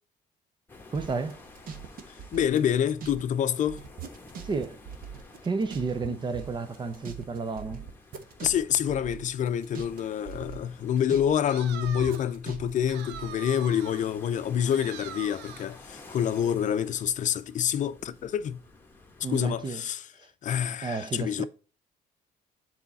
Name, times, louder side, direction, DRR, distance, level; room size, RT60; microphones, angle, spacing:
sound 1, 0.7-19.7, left 3 dB, 10° left, 1.3 m, -52 dB
voice 1, 0.9-1.4 4.4-4.8 5.4-7.9 19.2-19.8 20.8-21.4, right 4 dB, 25° right, 0.6 m, -31 dB
sound 2, 0.9-3.2 3.5-6.1 6.3-10.0 10.3-11.4 11.8-13.3, right 7 dB, 55° right, 1.1 m, -42 dB
voice 2, 2.1-3.8 8.4-18.6 19.2-20.1 20.4-21.4, left 9 dB, 45° left, 0.6 m, -27 dB
sound 3, 11.5-12.4 12.9-14.1 14.7-15.8, right 11 dB, 85° right, 0.6 m, -43 dB
7.2 x 4.2 x 4.1 m
cardioid pair, 110°, 17 cm